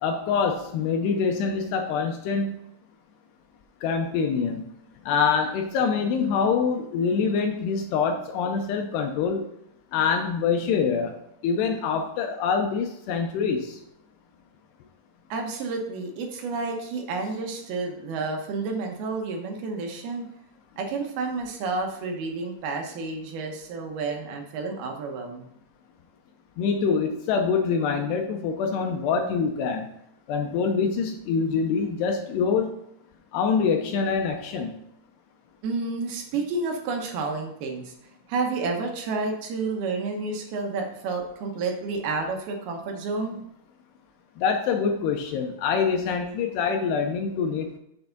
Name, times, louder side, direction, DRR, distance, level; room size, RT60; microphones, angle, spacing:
voice 1, 0.0-2.5 3.8-4.6 5.1-9.4 9.9-11.1 11.4-13.8 26.6-29.9 30.3-32.7 33.3-34.7 44.4-47.7, left 5 dB, 80° left, 3 dB, 2.6 m, -25 dB
voice 2, 15.3-20.3 20.8-25.5 35.6-37.9 38.3-43.4, right 3 dB, 70° right, 3 dB, 2.6 m, -30 dB
7.0 x 6.6 x 3.9 m, 0.76 s
omnidirectional pair, 5.1 m